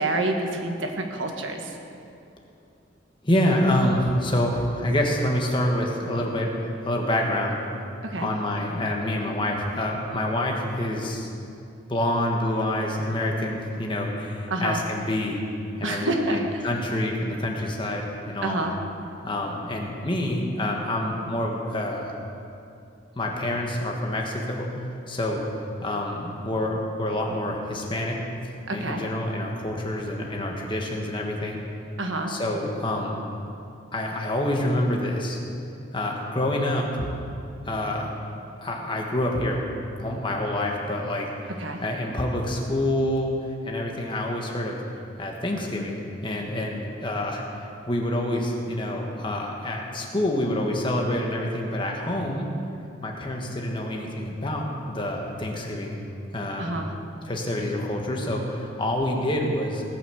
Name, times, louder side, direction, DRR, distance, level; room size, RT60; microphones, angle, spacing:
voice 1, 0.0-1.7 8.0-8.3 14.5-14.8 15.8-16.6 18.4-18.7 28.7-29.0 32.0-32.3 41.6-41.8 56.6-56.9, right 2 dB, 80° right, 3 dB, 1.5 m, -27 dB
voice 2, 3.2-7.6 8.2-11.3 11.9-15.4 15.8-18.6 19.2-22.2 23.1-24.7 25.1-25.4 25.8-28.3 28.7-31.6 32.3-33.2 33.9-35.4 35.9-37.1 37.6-38.2 38.6-39.6 40.0-41.3 41.8-43.3 43.6-44.8 45.2-47.4 47.9-52.5 53.0-56.0 56.3-56.8 57.2-59.8, left 1 dB, 25° left, 0 dB, 1.6 m, -27 dB
18.0 x 6.1 x 7.0 m, 2.6 s
head